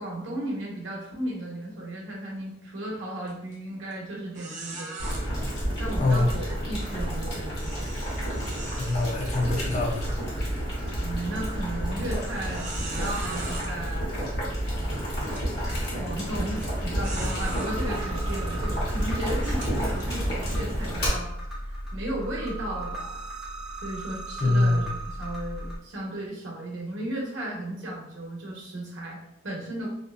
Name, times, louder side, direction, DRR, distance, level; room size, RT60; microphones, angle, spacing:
voice 1, 0.0-5.1 5.8-7.9 11.0-14.4 16.0-21.3 21.9-23.2 23.8-29.9, right 1 dB, 70° right, -2 dB, 0.7 m, -35 dB
sound 1, 3.3-3.5 3.9-4.0 4.3-5.2 7.6-9.9 10.3-10.5 11.1-11.2 12.2-13.7 14.6-14.7 15.2-15.5 16.5-16.7 17.0-17.7 18.4-18.5 19.3-20.6, right 3 dB, 40° right, 0.5 m, -40 dB
Boiling, 5.0-21.1, equal, 55° left, 1.2 m, -30 dB
voice 2, 6.0-6.3 8.8-10.1 24.4-24.9, left 2 dB, 40° left, -2 dB, 0.5 m, -24 dB
sound 2, 17.3-25.8, right 1 dB, 5° right, 0.9 m, -36 dB
2.5 x 2.2 x 2.3 m, 0.79 s
head